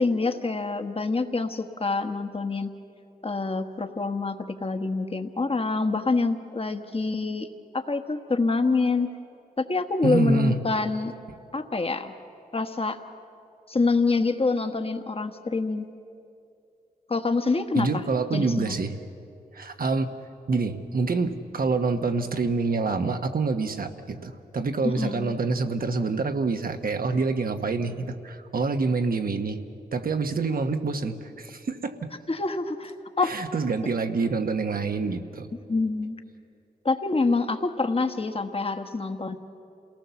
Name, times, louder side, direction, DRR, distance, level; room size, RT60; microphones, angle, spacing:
voice 1, 0.0-2.7 3.2-7.5 7.7-9.1 9.6-11.1 11.5-12.1 12.5-13.0 13.7-15.9 17.1-18.0 18.3-18.8 24.8-25.4 32.3-33.3 35.7-36.2 36.8-39.4, left 3 dB, 35° left, 7 dB, 1.4 m, -26 dB
voice 2, 10.0-10.6 17.7-19.0 19.5-20.1 20.5-29.6 29.9-32.1 33.2-35.5, right 4 dB, 70° right, 6 dB, 1.3 m, -26 dB
28.0 x 18.5 x 7.1 m, 2.6 s
cardioid pair, 65°, 16 cm